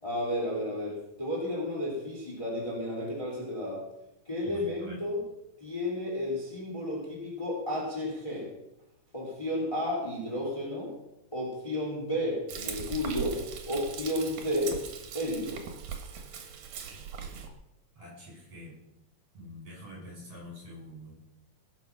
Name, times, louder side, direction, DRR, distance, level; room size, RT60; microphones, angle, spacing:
voice 1, 0.0-3.8 4.2-5.2 5.6-8.5 9.1-10.9 11.3-13.4 13.7-14.8 15.1-15.6, left 1 dB, 10° left, -3 dB, 3.2 m, -32 dB
voice 2, 4.4-5.0 18.0-18.8 19.3-21.2, left 1 dB, 50° right, -3 dB, 8.1 m, -46 dB
Frying (food), 12.5-17.5, right 7 dB, 75° right, 3.0 m, -40 dB
18.0 x 8.0 x 6.1 m, 0.89 s
omnidirectional pair, 3.6 m